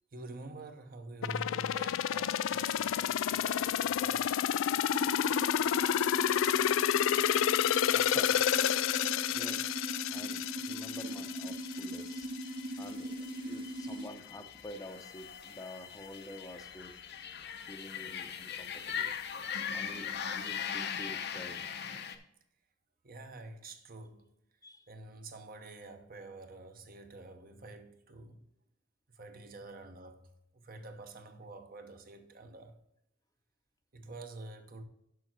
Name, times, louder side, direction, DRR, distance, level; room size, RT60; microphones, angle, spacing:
voice 1, 0.1-4.3 19.6-19.9 23.0-24.3 24.9-28.5 29.1-32.8 33.9-34.8, right 2 dB, 45° right, 0.9 m, -48 dB
sound 1, 1.2-12.0 12.4-12.5, left 10 dB, 80° left, 0.3 m, -30 dB
sound 2, 4.9-14.1, right 1 dB, 25° right, 0.4 m, -40 dB
sound 3, 7.1-22.2, left 7 dB, 60° left, 0.7 m, -42 dB
voice 2, 7.8-8.5 9.3-9.7 10.1-12.3 12.8-16.9 17.5-19.1 19.7-21.8 24.6-24.9, left 1 dB, 20° left, 0.7 m, -49 dB
6.7 x 5.7 x 6.0 m
head